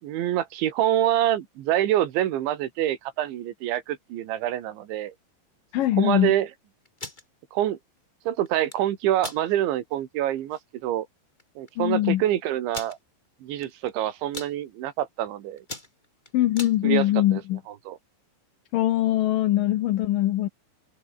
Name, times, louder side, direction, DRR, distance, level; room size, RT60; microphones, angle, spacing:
voice 1, 0.0-5.1 6.0-6.5 7.5-7.8 8.3-11.1 11.6-13.0 13.4-15.6 16.8-17.4 17.9-18.0, right 12 dB, 90° right, 4.2 m, -26 dB
voice 2, 5.7-6.3 11.8-12.2 16.3-17.6 18.7-20.5, left 14 dB, 75° left, 2.1 m, -22 dB
sound 1, 6.8-7.2 8.5-8.8 9.2-9.4 9.9-10.0 10.4-10.6 11.4-11.5 11.7-11.8 12.7-13.0 13.6-13.9 14.2-14.5 15.1-15.3 15.6-16.8, left 2 dB, 10° left, 3.8 m, -38 dB
omnidirectional pair, 5.1 m